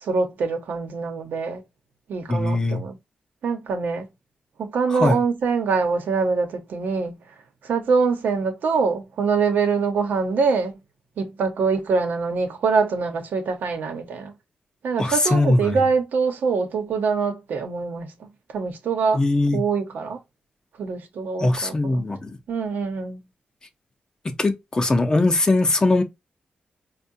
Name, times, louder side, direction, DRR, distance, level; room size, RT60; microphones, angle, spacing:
voice 1, 0.0-1.6 2.1-3.0 3.4-4.1 4.6-7.1 7.6-10.8 11.2-14.3 14.8-18.3 18.5-19.2 19.5-20.2 20.8-22.1 22.5-23.2, right 5 dB, 85° right, 0.9 m, -24 dB
voice 2, 2.3-2.8 4.9-5.2 15.0-15.8 19.1-19.6 21.4-22.4 24.2-26.0, left 2 dB, 25° left, 0.6 m, -21 dB
4.6 x 2.2 x 2.6 m
wide cardioid pair, 130°, 3 cm